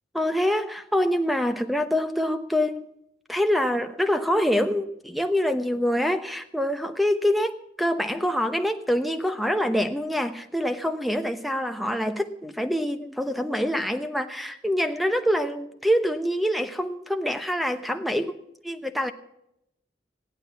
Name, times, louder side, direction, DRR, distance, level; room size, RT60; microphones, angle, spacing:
voice 1, 0.1-2.9 3.3-18.4 18.6-19.1, equal, ahead, 0.9 m, -25 dB
16.0 x 11.5 x 5.8 m
head